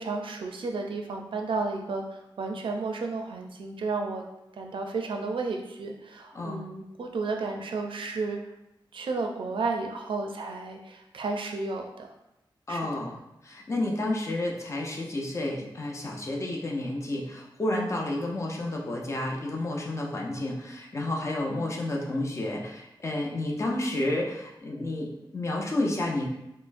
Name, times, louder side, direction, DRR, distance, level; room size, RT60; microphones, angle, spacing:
voice 1, 0.0-2.0 2.4-4.2 4.5-8.4 8.9-12.1 12.7-12.9, right 3 dB, 75° right, 3 dB, 0.4 m, -32 dB
voice 2, 12.7-13.2 13.4-26.3, left 1 dB, 35° left, -1 dB, 0.5 m, -30 dB
4.2 x 2.0 x 2.5 m, 0.89 s
wide cardioid pair, 135°, 9 cm